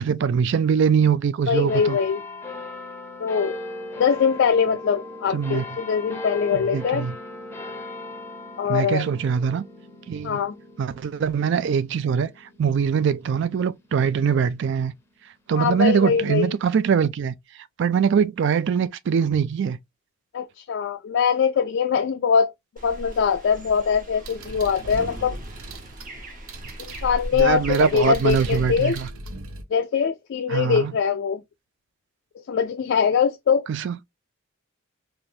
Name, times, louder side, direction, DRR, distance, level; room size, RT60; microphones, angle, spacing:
voice 1, 0.0-2.0 5.3-5.6 6.5-7.1 8.7-9.6 10.1-10.4 10.8-14.9 15.5-17.3 17.8-19.8 27.3-29.1 30.5-30.9 33.7-34.0, right 7 dB, 55° right, 0.3 m, -22 dB
voice 2, 1.5-2.2 3.2-3.6 4.0-7.1 8.6-9.1 10.2-10.6 15.5-16.5 20.3-22.5 22.8-25.4 26.8-29.0 29.7-31.4 32.4-33.7, left 6 dB, 60° left, 0.3 m, -22 dB
sound 1, 1.7-14.6 15.2-15.3, left 2 dB, 10° left, 0.6 m, -38 dB
sound 2, 22.8-29.1, equal, 40° right, 0.8 m, -37 dB
sound 3, 24.2-29.6, right 2 dB, 85° right, 0.7 m, -38 dB
3.3 x 2.5 x 2.7 m
head